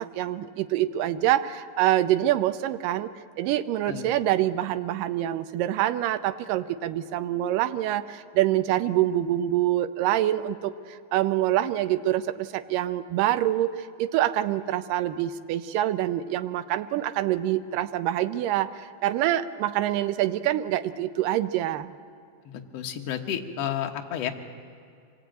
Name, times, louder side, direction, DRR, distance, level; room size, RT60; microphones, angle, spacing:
voice 1, 0.0-3.1 3.4-21.9, right 13 dB, 85° right, 11 dB, 2.4 m, -26 dB
voice 2, 22.5-24.3, left 9 dB, 60° left, 3 dB, 2.0 m, -31 dB
24.5 x 17.0 x 9.0 m, 2.4 s
omnidirectional pair, 3.8 m